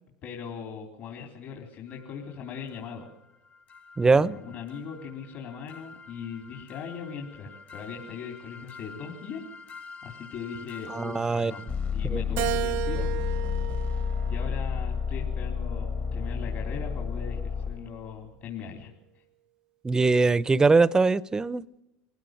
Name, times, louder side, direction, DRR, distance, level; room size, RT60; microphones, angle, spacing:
voice 1, 0.2-3.1 4.0-9.4 10.0-11.6 11.9-13.1 14.3-18.9, left 6 dB, 55° left, 1 dB, 3.7 m, -39 dB
sound 1, 1.9-2.0 2.7-2.8 3.1-3.2 3.7-18.1, left 6 dB, 35° left, 1.4 m, -33 dB
voice 2, 4.0-4.4 10.9-11.5 12.1-12.2 19.8-21.6, right 4 dB, 15° right, 19 dB, 0.7 m, -22 dB
Keyboard (musical), 12.4-14.9 15.5-16.7, right 18 dB, 70° right, 0.8 m, -34 dB
23.5 x 16.0 x 7.8 m, 0.90 s
supercardioid pair, 115°, 4 cm